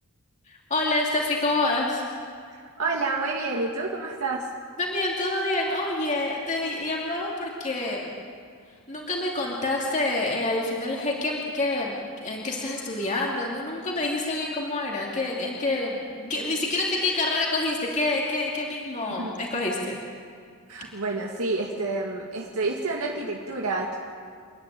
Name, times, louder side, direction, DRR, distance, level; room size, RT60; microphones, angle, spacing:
voice 1, 0.5-2.0 4.8-8.1 8.9-20.0, left 2 dB, 35° left, -2 dB, 2.6 m, -27 dB
voice 2, 2.8-4.5 19.2-19.4 20.7-24.0, right 3 dB, 80° right, -1 dB, 2.0 m, -29 dB
29.0 x 10.5 x 9.0 m, 2.2 s
head